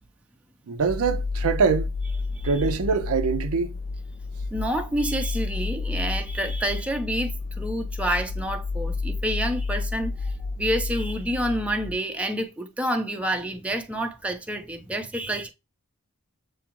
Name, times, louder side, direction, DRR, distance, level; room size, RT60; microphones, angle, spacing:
voice 1, 0.7-1.9 2.4-3.7, right 5 dB, 65° right, 0.5 m, -23 dB
sound 1, 0.8-11.9, left 3 dB, 40° left, 0.3 m, -30 dB
voice 2, 4.5-15.5, right 1 dB, 5° right, 0.5 m, -28 dB
6.9 x 2.4 x 2.9 m
head